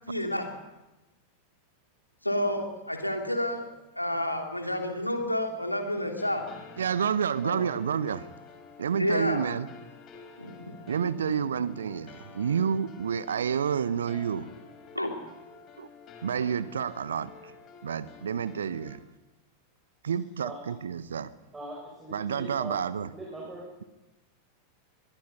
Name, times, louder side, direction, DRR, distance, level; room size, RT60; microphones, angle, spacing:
voice 1, 0.1-0.5 2.2-3.7 3.9-6.4 7.4-7.6 9.0-9.4 10.4-10.8 14.9-15.1, left 1 dB, 85° left, 3 dB, 3.0 m, -30 dB
sound 1, 6.2-19.0, left 5 dB, 30° left, 4.0 m, -50 dB
voice 2, 6.8-8.3 8.8-9.7 10.9-14.5 15.8-15.9 16.2-17.3 17.8-19.0 20.0-21.3 22.1-23.1, right 7 dB, 65° right, 17 dB, 1.0 m, -29 dB
voice 3, 21.5-22.8 23.1-23.6, right 2 dB, 10° right, -3 dB, 6.5 m, -40 dB
23.0 x 22.5 x 5.6 m, 1.0 s
figure-of-eight pair, 90°, 0 cm